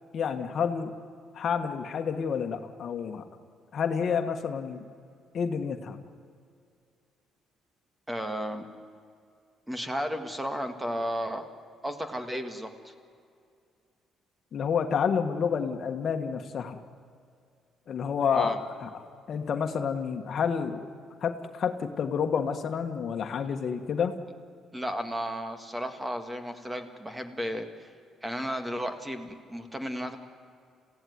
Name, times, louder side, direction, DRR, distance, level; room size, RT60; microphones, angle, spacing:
voice 1, 0.1-0.9 1.3-3.3 3.7-4.8 5.3-6.0 14.5-16.8 17.9-18.9 19.3-20.9 21.2-24.1, left 6 dB, 55° left, 7 dB, 1.5 m, -29 dB
voice 2, 8.1-8.7 9.7-11.4 11.8-12.9 18.3-18.6 24.7-27.9 28.2-30.2, equal, 10° right, 7 dB, 2.0 m, -33 dB
27.5 x 16.0 x 9.6 m, 2.4 s
cardioid pair, 105°, 0 cm